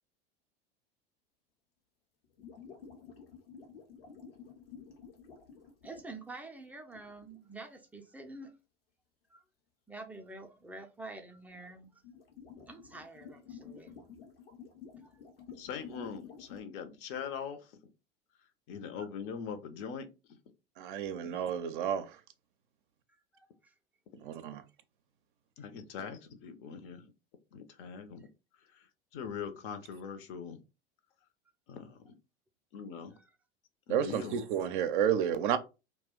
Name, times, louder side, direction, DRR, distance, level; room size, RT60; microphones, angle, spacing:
sound 1, 2.2-6.3 7.0-7.4 11.5-16.6, left 6 dB, 75° left, 0.8 m, -51 dB
voice 1, 5.8-8.5 9.3-9.4 9.9-12.0 12.7-14.0 15.0-15.2 19.0-19.1 23.1-23.7, right 2 dB, 5° right, 0.4 m, -48 dB
voice 2, 15.6-17.9 18.7-20.1 25.6-27.1 27.5-28.3 28.7-30.6 31.7-32.1 32.7-33.1 33.9-34.4, left 6 dB, 45° left, 0.6 m, -42 dB
voice 3, 20.8-22.0 24.2-24.6 33.9-35.6, right 9 dB, 60° right, 0.5 m, -31 dB
2.3 x 2.1 x 3.5 m
figure-of-eight pair, 80°, 29 cm